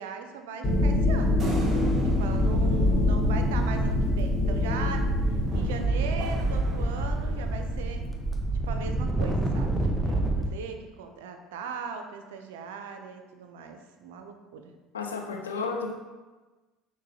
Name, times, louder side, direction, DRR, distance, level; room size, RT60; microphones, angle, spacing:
voice 1, 0.0-1.4 2.0-8.0 8.7-14.7, right 5 dB, 75° right, 6 dB, 0.4 m, -39 dB
sound 1, 0.6-8.4, left 2 dB, 40° left, 0.8 m, -26 dB
sound 2, 1.4-4.1 5.5-7.6, equal, 35° right, 1.0 m, -37 dB
sound 3, 1.7-1.8 2.0-10.5, right 2 dB, 5° right, 0.5 m, -29 dB
voice 2, 14.9-15.9, left 4 dB, 85° left, 3 dB, 0.4 m, -32 dB
5.9 x 2.1 x 2.7 m, 1.2 s
hypercardioid pair, 65°, 0 cm